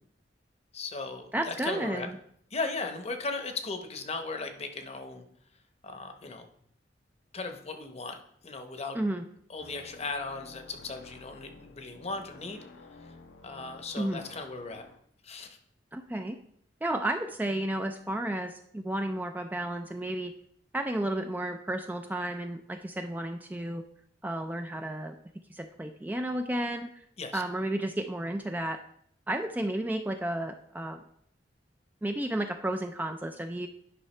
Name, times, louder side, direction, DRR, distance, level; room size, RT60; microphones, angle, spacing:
voice 1, 0.7-2.1 2.5-5.2 5.8-6.5 7.3-8.2 8.4-9.0 9.5-12.6 13.4-14.9 15.2-15.6 27.2-27.4, left 3 dB, 35° left, 6 dB, 0.8 m, -37 dB
voice 2, 1.3-2.2 8.9-9.2 14.0-14.2 15.9-16.4 16.8-20.3 20.7-23.8 24.2-25.2 25.5-26.9 27.3-28.8 29.3-31.0 32.0-33.7, right 1 dB, 10° right, 5 dB, 0.3 m, -32 dB
sound 1, 9.6-15.0, left 3 dB, 80° left, 0.8 m, -51 dB
10.0 x 5.7 x 3.2 m, 0.68 s
head